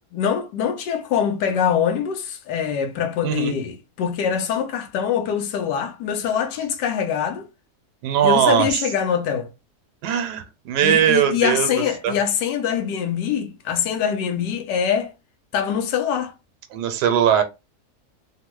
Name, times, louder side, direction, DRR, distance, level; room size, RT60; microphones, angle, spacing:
voice 1, 0.1-7.5 8.2-9.5 10.8-15.1 15.5-16.3, left 8 dB, 80° left, 1.3 m, -24 dB
voice 2, 3.2-3.5 8.0-8.7 10.0-11.7 12.0-12.1 16.7-17.4, right 9 dB, 75° right, 1.2 m, -19 dB
3.4 x 2.1 x 3.0 m
omnidirectional pair, 1.8 m